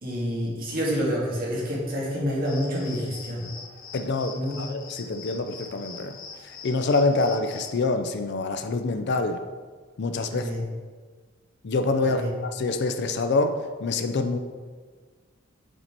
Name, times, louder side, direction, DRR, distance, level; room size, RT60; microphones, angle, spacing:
voice 1, 0.0-3.4 4.3-4.6 10.3-10.6 12.0-12.3, equal, 45° right, -5 dB, 2.0 m, -28 dB
sound 1, 2.4-7.8, left 5 dB, 85° left, 1.5 m, -43 dB
voice 2, 3.9-6.2 6.6-9.4 10.0-10.5 11.6-14.4, left 3 dB, 55° left, 8 dB, 0.5 m, -26 dB
6.7 x 4.5 x 4.5 m, 1.5 s
head